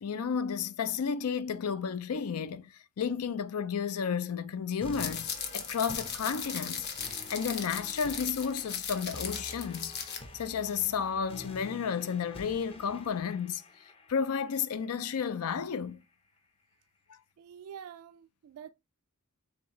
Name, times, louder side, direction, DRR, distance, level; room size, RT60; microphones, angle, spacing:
voice 1, 0.0-6.9 7.3-10.0 10.3-13.6 14.1-16.0 17.1-17.2, left 6 dB, 75° left, 0.4 m, -32 dB
sound 1, 4.8-15.8, left 2 dB, 25° left, 0.7 m, -48 dB
sound 2, 4.9-10.2, left 7 dB, 50° left, 0.9 m, -37 dB
voice 2, 17.4-18.7, right 8 dB, 70° right, 0.3 m, -47 dB
4.4 x 3.8 x 2.9 m
head